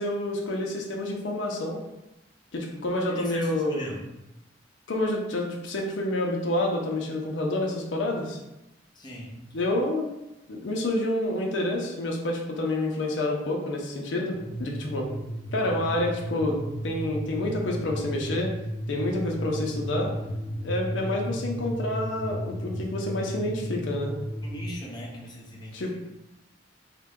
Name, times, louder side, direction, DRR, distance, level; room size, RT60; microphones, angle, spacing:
voice 1, 0.0-1.8 2.5-3.9 4.9-8.4 9.5-10.1 10.5-15.1 15.5-16.6 16.8-18.5 18.9-20.1 20.6-24.1 25.7-25.9, left 1 dB, 85° left, 0 dB, 0.6 m, -28 dB
voice 2, 3.1-4.1 8.9-9.5 24.4-25.9, equal, 25° left, -4 dB, 0.7 m, -39 dB
sound 1, 14.3-24.7, equal, 60° left, 0.9 m, -34 dB
3.7 x 2.2 x 3.6 m, 0.95 s
head